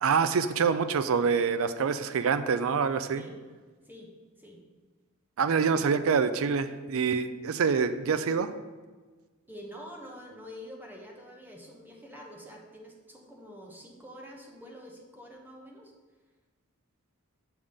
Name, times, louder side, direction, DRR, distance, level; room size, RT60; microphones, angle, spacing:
voice 1, 0.0-3.2 5.4-8.5, right 6 dB, 65° right, 11 dB, 0.4 m, -26 dB
voice 2, 9.5-15.9, equal, 10° right, 0 dB, 1.0 m, -46 dB
7.0 x 3.6 x 6.4 m, 1.4 s
head